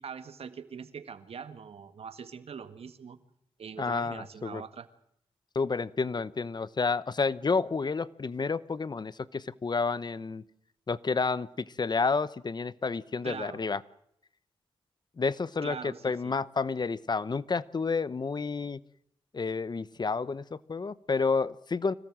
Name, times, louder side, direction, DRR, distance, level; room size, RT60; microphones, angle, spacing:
voice 1, 0.0-3.2 3.6-4.9 13.2-13.6 15.6-16.4, right 6 dB, 75° right, 10 dB, 1.8 m, -42 dB
voice 2, 3.8-4.6 5.5-10.4 10.9-13.8 15.2-18.8 19.3-21.9, left 4 dB, 45° left, 17 dB, 0.9 m, -30 dB
25.5 x 17.5 x 7.7 m, 0.74 s
cardioid pair, 65°, 10 cm